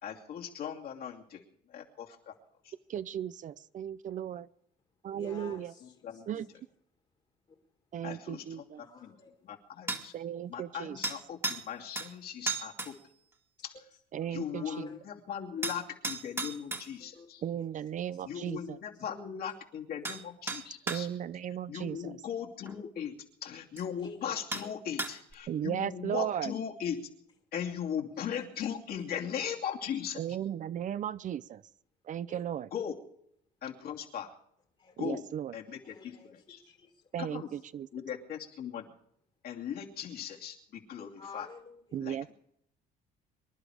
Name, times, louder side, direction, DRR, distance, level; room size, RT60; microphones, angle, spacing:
voice 1, 0.0-1.4 1.7-2.4 2.6-2.7 5.4-5.5 5.8-6.4 8.0-9.1 9.4-10.1 10.5-13.0 13.6-13.8 14.3-17.4 18.2-21.1 21.7-27.1 27.5-30.2 32.7-33.0 33.6-34.3 35.0-35.2 35.5-36.6 37.2-37.5 37.9-38.9 39.4-41.5 42.0-42.3, left 8 dB, 65° left, 0 dB, 2.8 m, -39 dB
voice 2, 2.9-4.5 5.0-5.7 6.3-6.5 7.9-8.8 10.1-11.0 14.1-14.9 17.4-18.8 20.9-22.2 25.5-26.5 30.2-31.6 32.0-32.7 35.0-35.5 37.1-37.9 41.9-42.3, right 10 dB, 50° right, 16 dB, 0.6 m, -36 dB
voice 3, 5.1-6.2 7.5-7.6 8.7-9.3 14.1-14.3 14.5-15.0 15.6-15.7 17.0-17.3 17.6-17.7 18.1-18.2 24.0-24.4 32.3-32.4 34.8-35.0 35.8-37.0 41.2-42.0, left 5 dB, 35° left, 3 dB, 2.1 m, -51 dB
sound 1, 9.9-10.1 11.0-11.7 12.0-12.1 12.5-12.9 15.6-16.9 19.5-19.6 20.0-20.2 20.5-21.0 22.7-22.8 23.8-23.9 24.5-24.7 25.0-25.3, right 3 dB, 15° right, 1.8 m, -34 dB
25.5 x 11.5 x 5.0 m, 0.71 s
cardioid pair, 110°, 17 cm